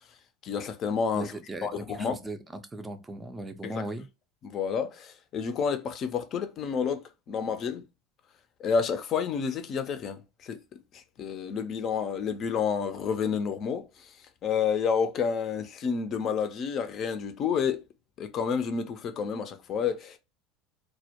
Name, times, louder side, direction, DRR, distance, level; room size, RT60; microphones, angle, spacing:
voice 1, 0.4-1.3 1.6-2.2 3.6-3.8 4.4-7.8 8.6-10.6 10.9-14.1 14.4-17.8 18.2-20.2, left 6 dB, 45° left, 0.5 m, -30 dB
voice 2, 1.1-4.1, right 1 dB, 15° right, 0.4 m, -38 dB
2.2 x 2.1 x 2.8 m
supercardioid pair, 100°, 0 cm